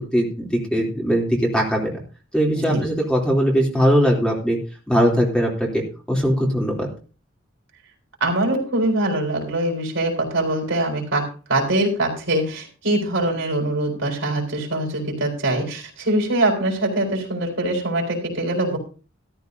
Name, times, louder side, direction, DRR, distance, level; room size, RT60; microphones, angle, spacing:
voice 1, 0.0-1.9 2.3-4.6 4.9-5.8 6.1-6.9, equal, 5° left, -2 dB, 3.0 m, -20 dB
voice 2, 2.5-2.9 8.2-18.8, right 1 dB, 70° right, 0 dB, 4.4 m, -23 dB
14.0 x 13.5 x 2.7 m, 0.36 s
head